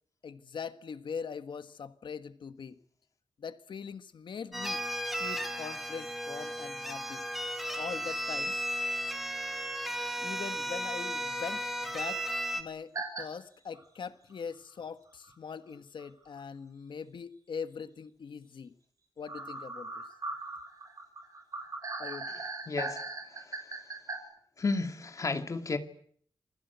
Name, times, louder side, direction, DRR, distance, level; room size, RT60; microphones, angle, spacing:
voice 1, 0.2-2.8 3.4-4.8 5.2-7.3 7.7-8.6 10.2-12.2 12.5-12.9 13.2-18.7 19.2-20.0 22.0-22.3, left 6 dB, 85° left, 1.5 m, -42 dB
sound 1, 4.5-12.6, equal, ahead, 2.6 m, -35 dB
sound 2, 12.9-13.2 13.8-13.9 15.2-15.3 16.0-16.1 16.4-16.5 19.3-24.2, right 3 dB, 45° right, 6.3 m, -39 dB
voice 2, 22.7-23.0 23.4-23.6 24.6-25.8, left 3 dB, 45° left, 2.4 m, -32 dB
28.0 x 20.5 x 8.2 m
wide cardioid pair, 170°, 8 cm